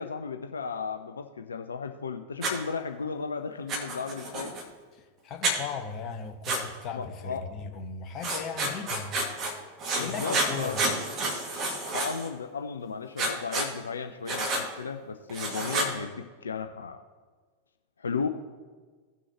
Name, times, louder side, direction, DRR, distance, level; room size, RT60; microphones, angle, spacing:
voice 1, 0.0-4.5 6.9-7.4 10.0-10.9 11.9-17.0 18.0-18.3, left 5 dB, 70° left, 0.5 m, -35 dB
Writing, 2.4-2.5 3.7-4.6 5.4-5.6 6.4-6.6 8.2-9.5 9.8-12.3 13.2-13.7 14.3-14.6 15.3-15.9, right 2 dB, 30° right, 2.0 m, -29 dB
voice 2, 4.9-9.2 10.0-10.9, left 6 dB, 35° left, 1.1 m, -37 dB
17.0 x 6.2 x 2.9 m
figure-of-eight pair, 90°, 0 cm